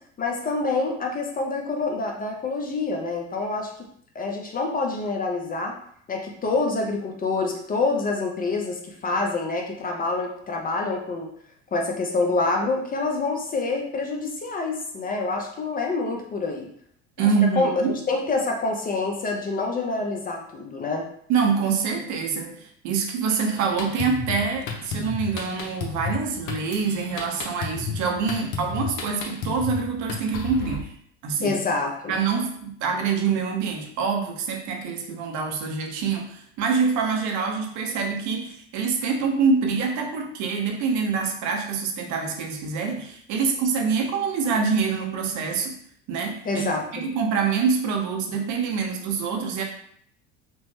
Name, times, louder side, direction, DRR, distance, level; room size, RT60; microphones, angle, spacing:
voice 1, 0.2-3.7 4.1-5.8 6.1-11.3 11.7-16.7 17.2-17.3 17.6-21.0 31.4-32.2 46.5-47.0, left 3 dB, 25° left, 1 dB, 0.5 m, -26 dB
voice 2, 17.2-18.0 21.3-30.9 31.2-31.6 32.1-45.8 46.1-46.7 46.9-49.6, right 5 dB, 55° right, 2 dB, 0.7 m, -25 dB
Drum kit, 23.6-30.8, left 5 dB, 60° left, 0.7 m, -33 dB
3.0 x 2.0 x 3.1 m, 0.65 s
supercardioid pair, 85°, 35 cm